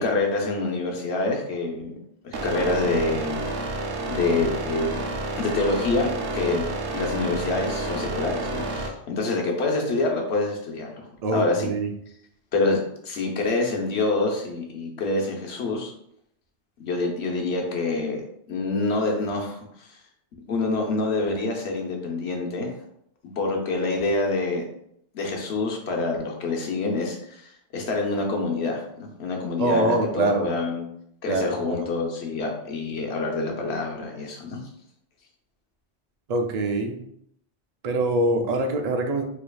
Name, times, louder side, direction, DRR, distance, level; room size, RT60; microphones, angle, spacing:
voice 1, 0.0-1.9 2.2-3.7 4.1-5.0 5.4-11.7 12.5-15.9 16.8-18.2 18.5-19.9 20.5-22.7 23.2-24.6 25.1-30.9 31.2-34.6, left 3 dB, 70° left, 1 dB, 1.1 m, -26 dB
sound 1, 2.3-8.9, right 2 dB, 80° right, 0.9 m, -30 dB
voice 2, 11.2-11.9 29.6-30.4 31.3-31.9 36.3-37.0 37.8-39.2, right 2 dB, 50° right, 4 dB, 0.5 m, -24 dB
4.9 x 3.0 x 2.3 m, 0.72 s
omnidirectional pair, 1.1 m